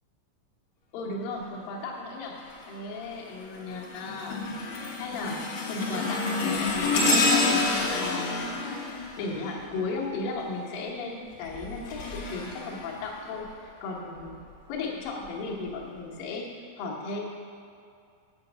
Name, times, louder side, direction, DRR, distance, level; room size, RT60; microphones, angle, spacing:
voice 1, 0.9-2.4 2.7-4.4 5.0-5.4 5.7-7.5 7.9-8.5 9.2-14.4 14.7-16.5 16.8-17.2, left 3 dB, 65° left, -3 dB, 2.5 m, -35 dB
sound 1, 2.4-2.8 3.3-10.1 11.3-13.5 14.2-14.3 15.2-15.3, left 3 dB, 90° left, 1.5 m, -29 dB
8.9 x 7.3 x 6.2 m, 2.4 s
omnidirectional pair, 5.4 m